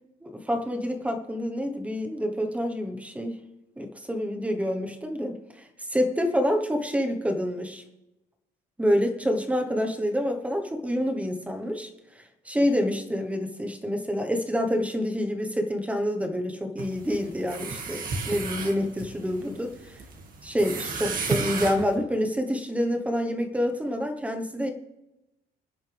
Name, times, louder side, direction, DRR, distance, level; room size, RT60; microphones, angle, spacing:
voice 1, 0.2-3.4 3.8-5.4 5.9-7.8 8.8-11.9 12.4-19.7 20.4-24.7, equal, 5° right, 4 dB, 1.2 m, -27 dB
sound 1, 16.8-21.9, right 4 dB, 45° right, 2.2 m, -34 dB
26.5 x 10.0 x 3.5 m, 0.99 s
cardioid pair, 165°, 20 cm